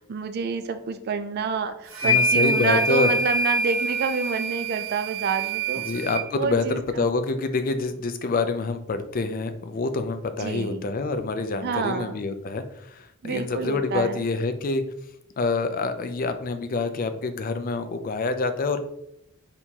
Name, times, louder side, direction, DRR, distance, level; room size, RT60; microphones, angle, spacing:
voice 1, 0.0-5.8 6.3-7.1 10.4-10.9 11.6-12.2 13.2-14.3, right 5 dB, 45° right, 9 dB, 0.3 m, -28 dB
sound 1, 1.9-6.2, right 1 dB, 65° right, 0.7 m, -25 dB
voice 2, 2.0-3.1 5.8-14.9 15.4-18.8, left 3 dB, 40° left, 9 dB, 0.4 m, -27 dB
4.4 x 3.4 x 2.8 m, 0.77 s
head